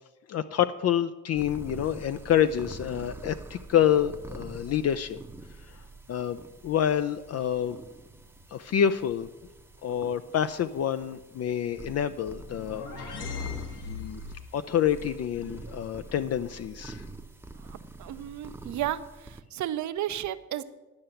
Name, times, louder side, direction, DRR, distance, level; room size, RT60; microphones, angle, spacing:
voice 1, 0.3-5.2 5.7-5.8 6.1-6.4 6.6-7.8 8.5-9.3 9.8-13.5 13.9-14.2 14.5-17.0, left 9 dB, 55° left, 11 dB, 0.5 m, -27 dB
sound 1, 1.3-19.4, right 2 dB, 10° right, 0.7 m, -46 dB
sound 2, 12.3-14.6, left 6 dB, 80° left, 1.7 m, -38 dB
voice 2, 17.6-20.6, right 12 dB, 70° right, 12 dB, 0.7 m, -33 dB
10.5 x 5.7 x 7.7 m, 1.1 s
cardioid pair, 90°, 30 cm